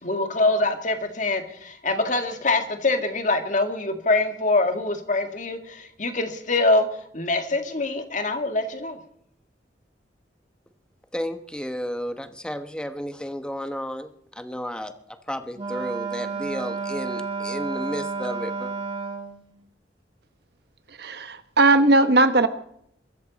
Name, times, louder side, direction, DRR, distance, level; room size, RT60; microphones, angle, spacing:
voice 1, 0.0-6.9 7.1-9.0, left 2 dB, 45° left, 2.0 m, -24 dB
voice 2, 11.1-18.7, equal, 5° left, 1.1 m, -32 dB
Wind instrument woodwind instrument, 15.5-19.4, right 4 dB, 30° right, 2.1 m, -31 dB
voice 3, 20.9-22.5, right 2 dB, 65° right, 1.3 m, -18 dB
23.0 x 13.5 x 4.2 m
head